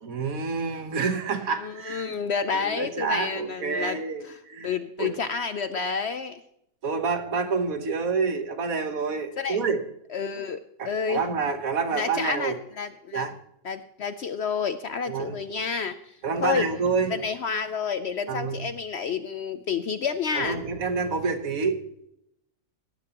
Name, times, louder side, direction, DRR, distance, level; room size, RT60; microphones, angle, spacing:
voice 1, 0.0-2.1 2.5-4.7 5.0-5.2 6.8-9.8 10.8-12.6 13.1-13.3 15.1-15.4 16.2-17.1 18.3-18.7 20.4-21.8, right 5 dB, 65° right, 8 dB, 1.6 m, -28 dB
voice 2, 1.6-4.0 4.2-6.4 9.4-9.6 10.1-10.6 10.8-11.2 11.9-13.3 13.6-16.6 17.1-20.6, left 6 dB, 60° left, 10 dB, 0.7 m, -30 dB
19.0 x 11.0 x 2.9 m, 0.76 s
omnidirectional pair, 1.6 m